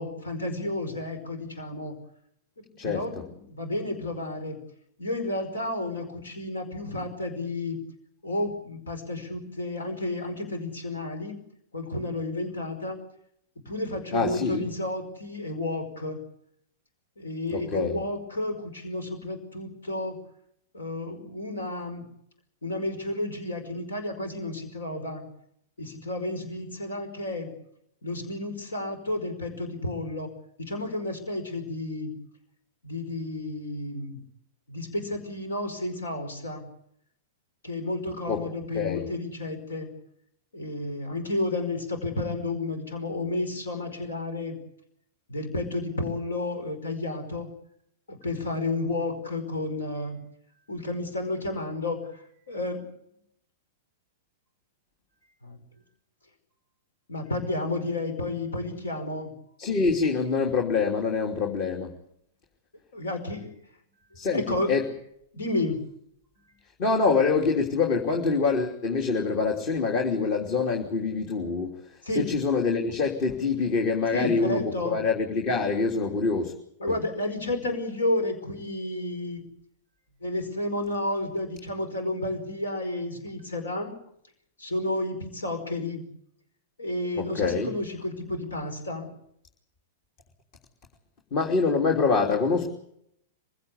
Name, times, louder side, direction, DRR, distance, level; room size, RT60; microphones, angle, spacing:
voice 1, 0.0-1.9 2.8-4.6 5.0-7.8 8.2-11.4 11.7-13.0 13.6-16.2 17.2-20.2 20.7-22.0 22.6-25.2 25.8-27.5 28.0-30.3 30.6-32.1 32.8-34.2 34.7-36.6 37.6-39.9 40.5-44.6 45.3-47.5 48.1-50.2 50.7-52.8 55.4-55.6 57.1-59.3 62.9-63.5 64.1-64.7 65.3-65.8 72.0-72.3 74.1-75.0 76.8-79.4 80.2-83.9 84.6-86.0 86.8-89.1, left 2 dB, 85° left, 7 dB, 5.1 m, -31 dB
voice 2, 2.8-3.2 14.1-14.6 17.5-17.9 38.2-38.4 38.7-39.1 59.6-62.0 64.1-64.4 64.7-64.9 66.8-76.5 76.9-77.0 87.2-87.7 91.3-92.7, left 4 dB, 45° left, 2 dB, 3.1 m, -25 dB
25.5 x 16.5 x 8.5 m, 0.74 s
hypercardioid pair, 105°, 0 cm